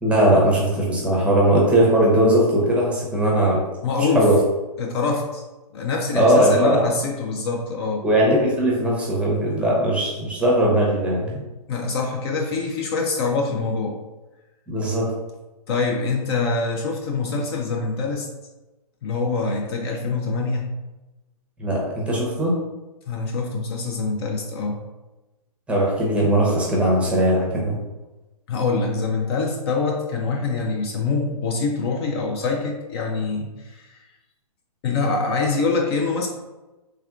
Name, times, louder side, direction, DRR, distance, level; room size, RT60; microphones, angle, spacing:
voice 1, 0.0-3.6 4.0-4.4 6.1-6.8 8.0-11.4 14.7-15.1 21.6-22.6 25.7-27.8, right 1 dB, 5° right, -4 dB, 0.7 m, -19 dB
voice 2, 3.8-4.3 4.8-5.4 5.7-8.1 11.7-14.0 15.7-18.3 19.0-20.7 23.1-24.8 28.5-34.0 34.8-36.3, left 4 dB, 40° left, 1 dB, 0.5 m, -24 dB
3.5 x 3.4 x 2.3 m, 1.1 s
hypercardioid pair, 130°, 20 cm